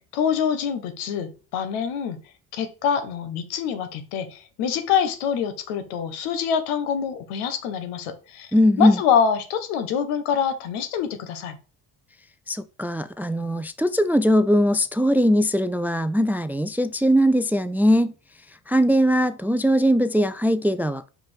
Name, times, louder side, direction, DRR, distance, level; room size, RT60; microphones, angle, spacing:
voice 1, 0.1-2.2 2.5-8.5 8.8-11.6, left 7 dB, 85° left, 1.3 m, -25 dB
voice 2, 8.5-9.0 12.5-18.1 18.7-21.1, equal, 5° right, 0.4 m, -20 dB
5.2 x 5.2 x 3.5 m
supercardioid pair, 65°, 48 cm